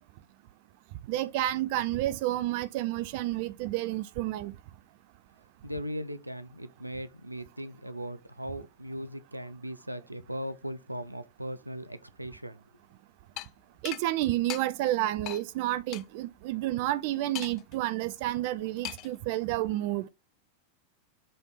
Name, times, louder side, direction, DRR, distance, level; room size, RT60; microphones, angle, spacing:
voice 1, 1.1-4.5 13.8-20.0, right 15 dB, 50° right, 0.5 m, -30 dB
voice 2, 5.6-12.6, equal, 85° right, 0.6 m, -38 dB
sound 1, 13.4-13.5 13.9-14.0 14.5-14.6 15.3-15.4 15.9-16.0 17.4-17.7 18.8-19.2, left 16 dB, 40° left, 0.3 m, -38 dB
7.6 x 3.4 x 4.0 m
figure-of-eight pair, 90°, 0 cm